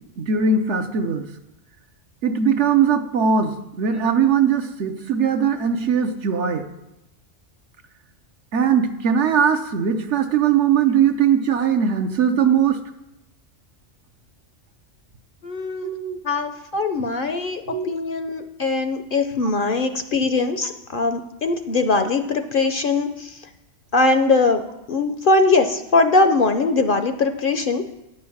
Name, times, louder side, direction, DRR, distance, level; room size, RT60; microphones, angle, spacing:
voice 1, 0.2-1.2 2.2-6.6 8.5-12.8 15.8-16.2 17.7-17.9, right 7 dB, 70° right, 7 dB, 1.1 m, -20 dB
voice 2, 15.4-15.9 16.2-23.3 23.9-24.6 24.9-27.9, left 3 dB, 55° left, 8 dB, 0.7 m, -21 dB
9.3 x 6.6 x 7.0 m, 0.90 s
omnidirectional pair, 1.3 m